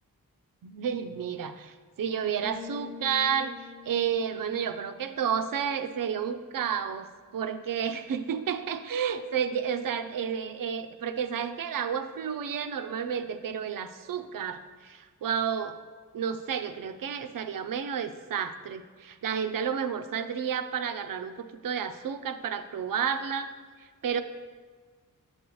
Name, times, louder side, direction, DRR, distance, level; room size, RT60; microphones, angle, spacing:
voice 1, 0.6-15.8 16.1-23.5 23.8-24.2, right 7 dB, 75° right, 9 dB, 0.5 m, -31 dB
sound 1, 2.4-6.1, left 6 dB, 15° right, 0.6 m, -47 dB
7.2 x 7.0 x 3.1 m, 1.5 s
cardioid pair, 60°, 34 cm